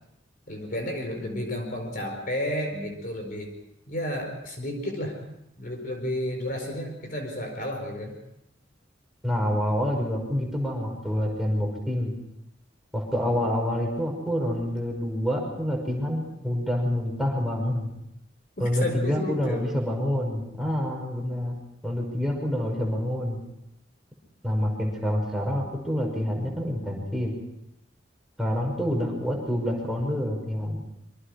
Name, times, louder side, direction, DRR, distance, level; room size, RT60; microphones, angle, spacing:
voice 1, 0.5-3.5 3.9-5.2 5.6-8.2 18.8-19.6, left 1 dB, 45° left, 3 dB, 4.5 m, -31 dB
voice 2, 9.2-12.1 12.9-17.9 18.6-21.6 21.8-23.4 24.4-27.3 28.4-30.8, equal, ahead, -1 dB, 5.6 m, -27 dB
26.5 x 24.0 x 5.0 m, 0.81 s
head